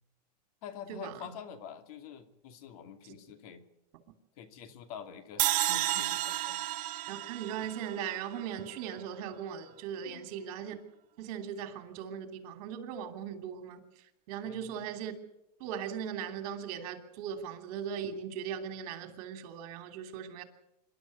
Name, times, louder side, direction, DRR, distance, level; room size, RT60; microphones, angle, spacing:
voice 1, 0.6-3.6 4.4-6.6 10.0-10.3 14.4-14.8, left 7 dB, 60° left, 2.6 m, -46 dB
sound 1, 5.4-8.6, right 16 dB, 40° right, 1.0 m, -32 dB
voice 2, 7.1-10.7 11.2-13.8 14.3-15.1 15.6-20.4, right 8 dB, 60° right, 3.0 m, -39 dB
26.0 x 12.0 x 9.5 m
supercardioid pair, 135°, 21 cm